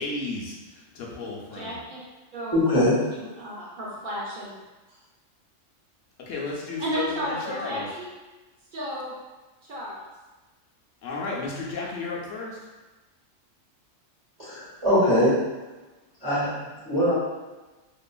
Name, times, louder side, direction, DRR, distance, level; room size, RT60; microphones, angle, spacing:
voice 1, 0.0-1.8 6.3-7.9 11.0-12.6, left 3 dB, 70° left, -3 dB, 1.0 m, -33 dB
voice 2, 1.5-2.0 2.3-2.6 3.1-4.5 6.8-8.1 8.7-9.1 9.7-10.0, equal, 55° right, -5 dB, 0.6 m, -33 dB
voice 3, 2.5-2.9 14.4-15.3 16.2-17.1, equal, 25° right, -13 dB, 1.1 m, -22 dB
2.8 x 2.4 x 2.2 m, 1.2 s
omnidirectional pair, 1.4 m